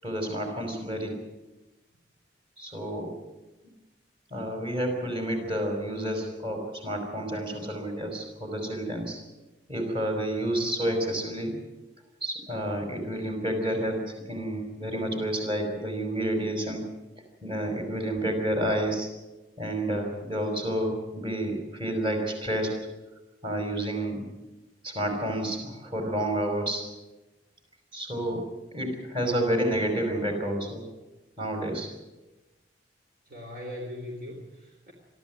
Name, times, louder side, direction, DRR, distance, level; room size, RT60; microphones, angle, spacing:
voice 1, 0.0-1.2 2.6-3.1 4.3-9.2 9.7-11.6 12.2-16.9 17.4-19.1 19.6-22.8 23.4-24.2 24.8-26.8 27.9-30.8 31.4-31.9, right 1 dB, 30° right, 3 dB, 5.3 m, -30 dB
voice 2, 33.3-34.9, left 1 dB, 50° right, 1 dB, 3.5 m, -40 dB
23.0 x 14.0 x 9.6 m, 1.1 s
head